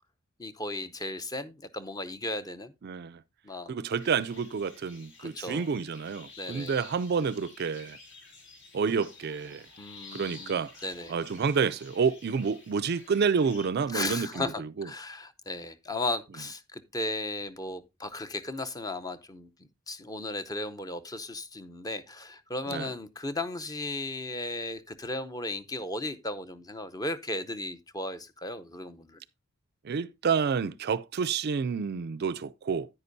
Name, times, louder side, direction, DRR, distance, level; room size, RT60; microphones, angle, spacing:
voice 1, 0.4-2.7 3.4-3.7 5.2-5.7 6.4-6.7 9.8-11.1 13.9-19.5 19.9-29.2, left 2 dB, 15° left, 0.7 m, -36 dB
voice 2, 2.8-3.2 3.7-8.0 8.7-9.6 10.1-10.7 11.1-14.9 22.7-22.9 29.8-32.9, right 5 dB, 50° right, 0.4 m, -29 dB
sound 1, 4.0-13.7, left 4 dB, 55° left, 3.1 m, -51 dB
9.7 x 9.6 x 2.6 m
head